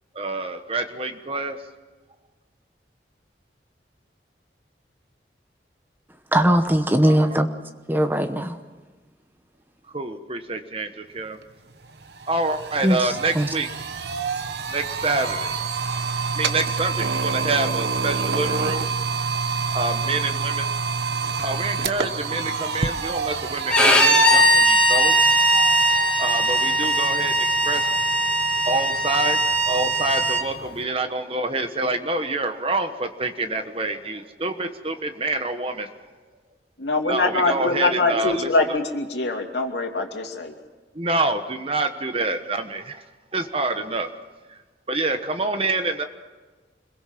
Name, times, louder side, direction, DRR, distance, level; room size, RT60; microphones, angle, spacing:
voice 1, 0.1-1.6 7.0-7.4 9.9-11.4 12.3-13.7 14.7-15.5 16.3-18.9 19.7-20.7 21.4-25.1 26.2-27.9 28.6-35.9 37.1-38.5 40.9-43.0 43.3-44.1 44.5-44.6 44.9-46.0, right 2 dB, 30° right, 8 dB, 1.2 m, -27 dB
voice 2, 6.3-7.5 7.9-8.6 12.8-13.5, right 1 dB, 10° right, 8 dB, 0.9 m, -20 dB
sound 1, 11.4-11.5 11.8-30.8, right 4 dB, 70° right, 1.0 m, -29 dB
Bowed string instrument, 23.7-30.4, right 1 dB, 5° left, 2.5 m, -19 dB
voice 3, 36.8-40.5, left 3 dB, 75° left, 3 dB, 2.7 m, -23 dB
26.5 x 22.0 x 6.0 m, 1.3 s
head